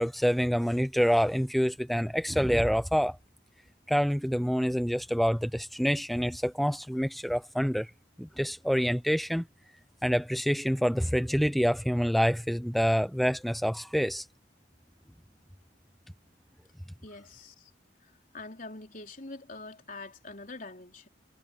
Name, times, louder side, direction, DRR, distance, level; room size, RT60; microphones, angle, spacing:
voice 1, 0.0-3.2 3.9-7.9 8.2-9.5 10.0-14.3, equal, ahead, 0.5 m, -27 dB
voice 2, 17.0-17.7 18.0-21.1, left 3 dB, 45° left, 4.1 m, -44 dB
head